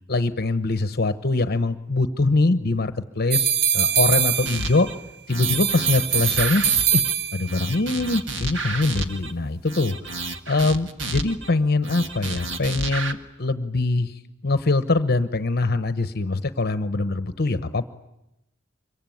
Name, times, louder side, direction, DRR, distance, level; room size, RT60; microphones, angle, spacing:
voice 1, 0.1-3.5 3.7-4.9 5.3-6.6 6.9-7.0 7.3-10.0 10.5-17.8, left 3 dB, 55° left, 11 dB, 1.0 m, -23 dB
sound 1, 3.3-5.0 5.4-7.6, right 8 dB, 55° right, 1.0 m, -23 dB
sound 2, 4.5-4.9 5.3-7.1 7.5-9.3 9.7-11.5 11.8-13.1, right 2 dB, 70° right, 1.8 m, -31 dB
26.0 x 23.5 x 9.3 m, 0.88 s
head